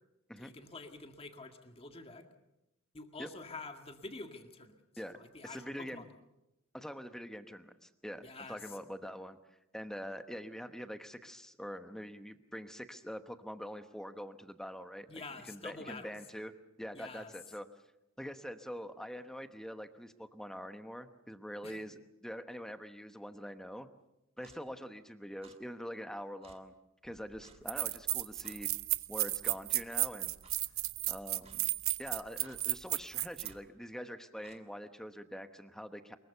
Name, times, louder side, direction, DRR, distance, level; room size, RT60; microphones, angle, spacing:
voice 1, 0.4-2.3 2.9-4.8 5.1-6.1 8.2-8.6 15.1-16.2 16.9-17.3 21.6-21.8, left 3 dB, 30° left, 5 dB, 2.0 m, -47 dB
voice 2, 5.0-6.0 6.7-9.4 9.7-16.5 16.8-17.7 18.2-21.9 22.2-23.9 24.4-26.7 27.0-28.7 29.1-30.3 31.1-31.7 32.0-36.2, equal, 5° left, 9 dB, 1.0 m, -44 dB
Clock, 24.4-24.6 25.4-25.6 26.4-26.6 27.4-27.6 28.4-28.6 29.4-29.6 30.4-30.6 31.4-31.6 32.4-32.6 33.4-33.6 34.4-34.6, right 4 dB, 30° right, 1.7 m, -58 dB
sound 1, 27.1-27.2 27.7-33.5, right 18 dB, 85° right, 0.8 m, -33 dB
24.0 x 22.0 x 6.8 m, 0.91 s
head